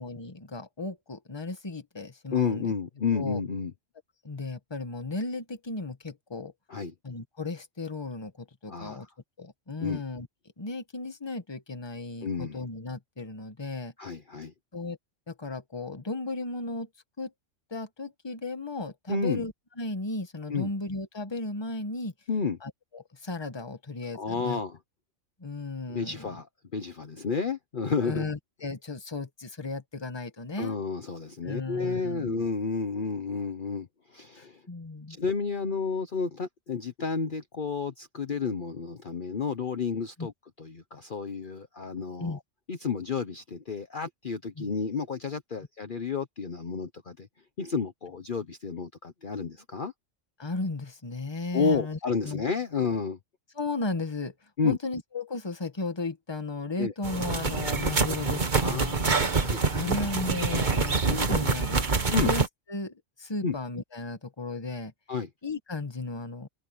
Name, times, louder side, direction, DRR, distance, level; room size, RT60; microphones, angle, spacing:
voice 1, 0.0-2.7 3.1-3.4 4.2-6.5 7.0-9.1 9.4-10.3 10.6-13.9 14.7-15.0 15.3-16.9 17.2-17.3 17.7-22.1 22.6-24.6 25.4-26.4 28.0-30.8 31.4-32.4 34.4-35.2 40.2-40.3 42.2-42.4 44.6-44.7 50.4-52.0 52.2-52.4 53.5-54.3 54.6-58.9 59.7-64.9 65.4-66.5, left 3 dB, 20° left, 1.3 m, -35 dB
voice 2, 2.3-3.7 6.7-6.9 8.7-9.1 9.8-10.0 12.2-12.6 14.0-14.5 19.1-19.4 20.5-20.7 22.3-22.6 24.1-24.8 25.9-26.5 26.7-28.2 30.6-34.6 35.1-40.3 40.6-42.4 42.7-47.3 47.6-49.9 51.5-53.2 54.6-54.8 56.8-56.9 58.6-59.9 62.1-62.3 63.4-63.5 65.1-65.3, left 5 dB, 45° left, 1.1 m, -31 dB
sound 1, 57.0-62.5, right 4 dB, 40° right, 1.6 m, -26 dB
open air
omnidirectional pair, 1.3 m